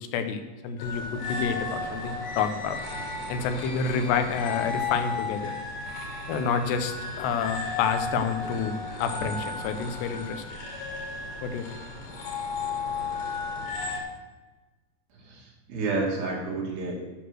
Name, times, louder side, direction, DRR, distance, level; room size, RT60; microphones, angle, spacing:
voice 1, 0.1-2.8 3.3-5.5 6.3-10.6 11.4-11.7, left 6 dB, 90° left, 7 dB, 3.0 m, -29 dB
sound 1, 0.8-14.0, left 3 dB, 70° left, 4.2 m, -34 dB
voice 2, 15.1-17.0, right 3 dB, 80° right, -3 dB, 4.4 m, -30 dB
10.5 x 6.3 x 6.3 m, 1.2 s
omnidirectional pair, 4.7 m